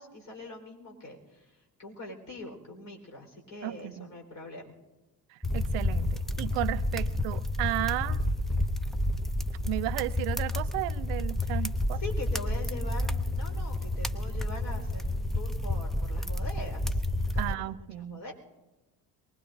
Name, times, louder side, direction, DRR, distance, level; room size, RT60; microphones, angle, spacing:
voice 1, 0.0-1.4 1.8-4.7 7.0-7.1 11.5-11.6 12.0-17.0 17.3-18.3, left 2 dB, 45° left, 2 dB, 4.4 m, -43 dB
voice 2, 3.6-4.1 5.3-8.2 9.7-12.0 17.4-18.2, right 18 dB, 65° right, 15 dB, 0.7 m, -34 dB
sound 1, 5.4-17.5, left 1 dB, ahead, 0.7 m, -30 dB
23.5 x 19.5 x 2.7 m, 1.1 s
hypercardioid pair, 55°, 47 cm